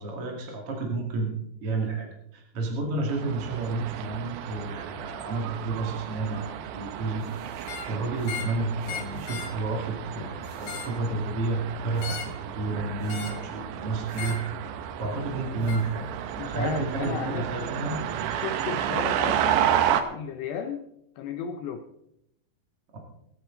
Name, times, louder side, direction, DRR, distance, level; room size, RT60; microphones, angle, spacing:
voice 1, 0.0-14.4 15.0-16.1 16.5-18.0 22.9-23.0, right 3 dB, 40° right, 0 dB, 2.1 m, -31 dB
sound 1, 3.1-20.0, right 10 dB, 75° right, 2.7 m, -32 dB
sound 2, 7.6-7.9 8.2-8.6 8.8-9.5 10.5-11.0 12.0-12.4 13.1-13.4 14.1-14.5 15.7-15.9, left 8 dB, 70° left, 3.3 m, -37 dB
voice 2, 16.4-17.9 18.2-19.7 20.1-20.9 21.2-21.8, left 7 dB, 85° left, 7 dB, 2.4 m, -34 dB
24.0 x 8.8 x 3.9 m, 0.80 s
omnidirectional pair, 5.8 m